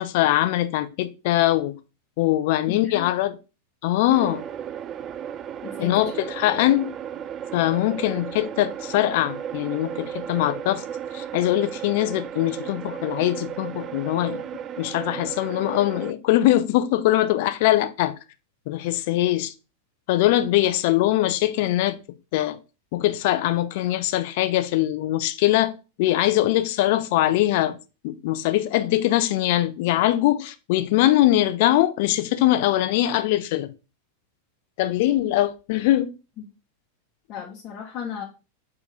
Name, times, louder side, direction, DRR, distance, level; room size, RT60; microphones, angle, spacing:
voice 1, 0.0-1.8 2.2-3.4 3.8-4.4 5.8-6.9 7.5-10.8 11.1-14.4 14.8-18.1 18.7-19.5 20.1-22.0 22.3-22.6 22.9-25.7 26.0-27.8 28.0-33.7 34.8-36.1, left 14 dB, 55° left, 0.6 m, -22 dB
voice 2, 2.7-3.1 5.6-6.1 37.3-38.2, left 7 dB, 35° left, 1.2 m, -35 dB
sound 1, 4.1-16.1, right 9 dB, 30° right, 0.3 m, -35 dB
4.7 x 4.1 x 5.1 m
figure-of-eight pair, 90°, 0 cm